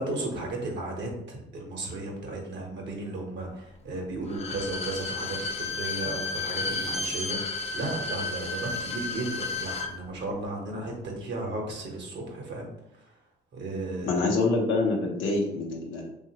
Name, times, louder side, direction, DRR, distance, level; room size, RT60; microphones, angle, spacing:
voice 1, 0.0-12.7 13.0-13.1 13.5-14.2, right 2 dB, 65° right, 0 dB, 0.9 m, -34 dB
Bowed string instrument, 4.3-9.9 10.2-10.3, left 3 dB, 30° left, 0.4 m, -32 dB
voice 2, 14.0-16.1, left 3 dB, 85° left, 0 dB, 0.6 m, -26 dB
2.9 x 2.4 x 2.8 m, 0.82 s
cardioid pair, 90°, 20 cm